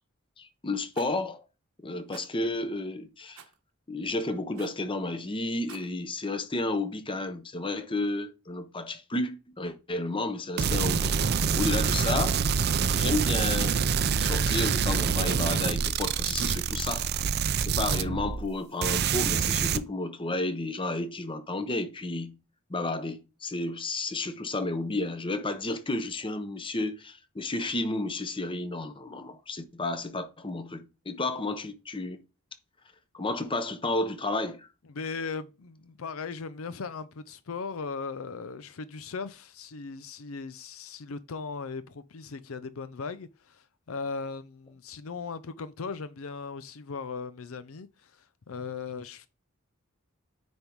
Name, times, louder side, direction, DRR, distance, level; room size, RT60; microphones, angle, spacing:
voice 1, 0.4-1.4 1.8-3.4 3.9-12.4 12.8-13.9 14.2-17.1 17.6-22.3 22.7-32.2 33.1-34.7, left 2 dB, 25° left, 0.9 m, -32 dB
Rattle, 0.9-1.2 2.1-2.3 3.4-3.6 4.6-4.8 5.5-5.9, right 7 dB, 85° right, 1.2 m, -49 dB
sound 1, 10.6-18.5 18.8-19.8, right 6 dB, 50° right, 0.5 m, -26 dB
voice 2, 34.9-49.3, left 4 dB, 75° left, 0.6 m, -38 dB
9.4 x 3.6 x 4.6 m
head